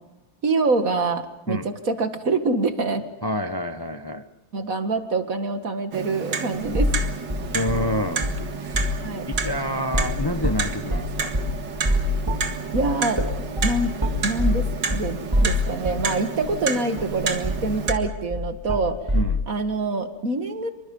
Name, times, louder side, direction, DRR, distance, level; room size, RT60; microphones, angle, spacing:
voice 1, 0.4-3.1 4.5-6.9 9.0-9.2 12.7-13.2 13.6-13.9 14.2-14.6 14.9-19.0 19.5-20.7, right 3 dB, 40° right, 8 dB, 2.1 m, -25 dB
voice 2, 3.2-4.2 7.5-8.3 8.6-8.9 9.3-11.4 19.1-19.4, left 1 dB, 25° left, 8 dB, 0.4 m, -28 dB
Clock, 5.9-17.9, right 5 dB, 60° right, 2.3 m, -30 dB
sound 1, 6.6-7.0 7.3-8.4 8.7-9.0 9.3-16.1 16.4-16.5 17.0-19.3, left 1 dB, 10° right, 2.8 m, -25 dB
26.5 x 24.5 x 5.4 m, 0.95 s
omnidirectional pair, 2.3 m